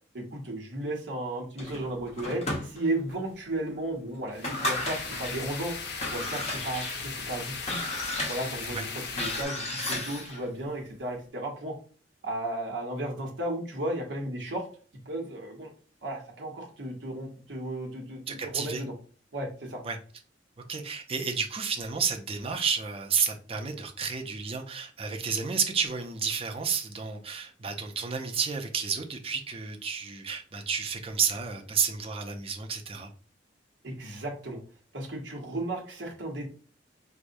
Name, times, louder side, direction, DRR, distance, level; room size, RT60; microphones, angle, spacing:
voice 1, 0.1-5.7 6.1-7.9 8.3-8.9 9.1-11.8 12.2-14.7 15.0-15.7 16.0-18.9 19.3-19.8 33.8-34.6 34.9-36.5, right 1 dB, 80° right, -1 dB, 0.9 m, -34 dB
sound 1, 1.6-3.2 3.7-3.8 4.2-5.4 5.9-10.5, left 1 dB, 35° left, 0.9 m, -34 dB
sound 2, 4.3-9.4, left 4 dB, 60° left, 0.6 m, -38 dB
voice 2, 18.3-18.8 19.8-20.0 20.7-33.1, right 6 dB, 30° right, 4 dB, 0.5 m, -31 dB
4.7 x 2.1 x 2.6 m, 0.41 s
head